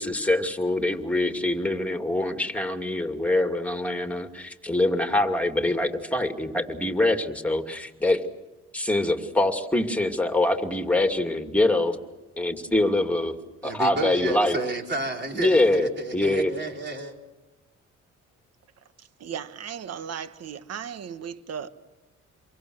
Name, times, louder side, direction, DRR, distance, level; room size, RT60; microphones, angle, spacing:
voice 1, 0.0-8.2 8.7-12.0 12.4-13.3 13.6-14.6 15.3-16.5, left 2 dB, 5° left, 2.6 m, -24 dB
voice 2, 13.6-17.1, right 2 dB, 35° right, 4.4 m, -31 dB
voice 3, 19.0-21.7, right 8 dB, 55° right, 1.4 m, -36 dB
29.0 x 23.5 x 6.5 m
cardioid pair, 90°, 30 cm